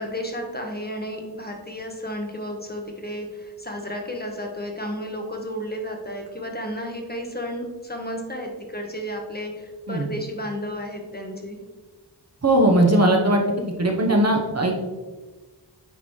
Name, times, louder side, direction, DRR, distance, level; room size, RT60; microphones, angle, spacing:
voice 1, 0.0-11.6, equal, 25° left, 1 dB, 1.2 m, -32 dB
voice 2, 12.4-13.4 13.8-14.7, right 1 dB, 40° right, 1 dB, 1.0 m, -18 dB
9.0 x 3.9 x 3.2 m, 1.3 s
wide cardioid pair, 60°, 42 cm